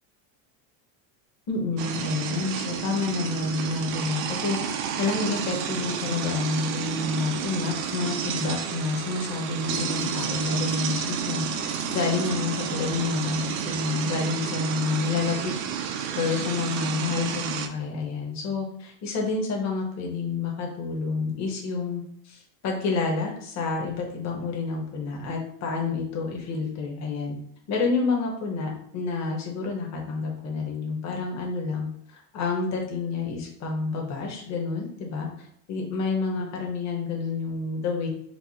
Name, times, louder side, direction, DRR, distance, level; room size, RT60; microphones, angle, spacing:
voice 1, 1.5-4.6 5.0-15.5 15.8-27.4 27.7-38.1, left 4 dB, 35° left, 0 dB, 1.0 m, -29 dB
sound 1, 1.8-17.7, right 7 dB, 90° right, 0.7 m, -30 dB
4.6 x 2.1 x 4.0 m, 0.68 s
cardioid pair, 160°, 49 cm